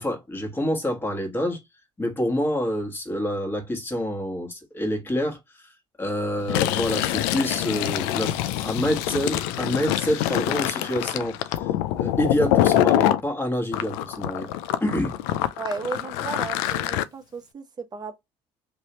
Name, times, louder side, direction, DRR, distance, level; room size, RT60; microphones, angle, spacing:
voice 1, 0.0-1.6 2.0-5.7 6.0-11.7 12.0-14.5 14.8-15.1, equal, 15° left, 1.4 m, -27 dB
Fill (with liquid), 6.4-13.2 13.7-17.0, left 13 dB, 85° left, 0.4 m, -25 dB
voice 2, 15.6-18.2, right 4 dB, 30° right, 0.9 m, -34 dB
3.1 x 2.6 x 2.9 m
supercardioid pair, 80°, 13 cm